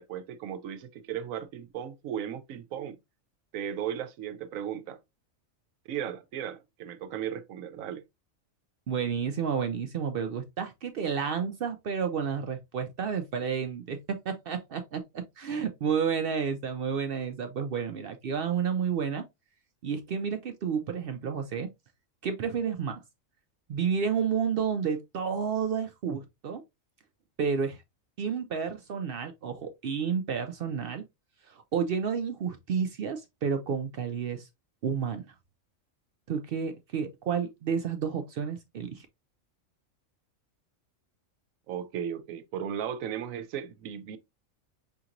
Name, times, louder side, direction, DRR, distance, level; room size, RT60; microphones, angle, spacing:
voice 1, 0.0-3.0 3.5-5.0 5.9-8.0 41.7-44.2, right 9 dB, 80° right, 1.0 m, -36 dB
voice 2, 8.9-19.2 19.8-21.7 22.2-23.0 23.7-26.6 27.4-27.8 28.2-31.0 31.5-34.5 34.8-35.3 36.3-39.1, right 6 dB, 65° right, 0.6 m, -31 dB
5.7 x 2.9 x 2.4 m
omnidirectional pair, 1.4 m